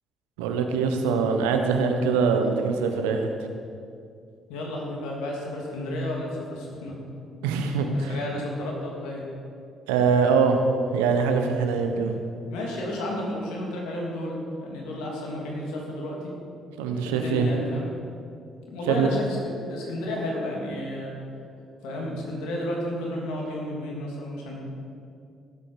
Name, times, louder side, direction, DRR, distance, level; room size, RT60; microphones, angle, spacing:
voice 1, 0.4-3.3 7.4-8.2 9.9-10.6 10.9-12.1 16.8-17.5 18.8-19.1, right 5 dB, 90° right, 5 dB, 1.2 m, -23 dB
voice 2, 4.5-6.9 7.9-9.2 12.5-16.3 17.2-17.9 18.7-21.1 21.8-24.6, left 1 dB, 85° left, -2 dB, 3.1 m, -32 dB
18.5 x 8.7 x 5.1 m, 2.4 s
hypercardioid pair, 55°, 0 cm